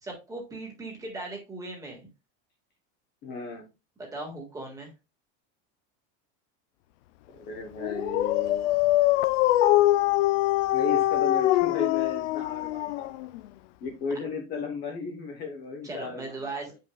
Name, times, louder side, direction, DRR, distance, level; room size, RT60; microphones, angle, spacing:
voice 1, 0.0-2.1 4.1-4.9 15.8-16.7, right 2 dB, 10° right, 0 dB, 1.7 m, -38 dB
voice 2, 3.2-3.6 7.3-8.7 10.7-13.3 13.8-16.8, left 4 dB, 25° left, 2 dB, 1.0 m, -35 dB
Dog, 7.8-13.5, left 15 dB, 80° left, 0.6 m, -23 dB
9.0 x 5.6 x 2.3 m, 0.27 s
supercardioid pair, 180°, 35 cm